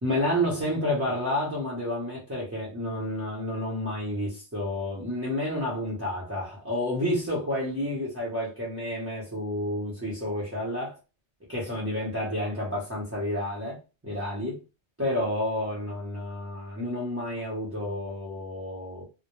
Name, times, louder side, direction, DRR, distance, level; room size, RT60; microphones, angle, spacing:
voice 1, 0.0-11.0 11.5-13.8 14.0-14.6 15.0-19.0, left 1 dB, 15° right, 0.6 m, -30 dB
2.1 x 2.1 x 2.9 m
omnidirectional pair, 1.1 m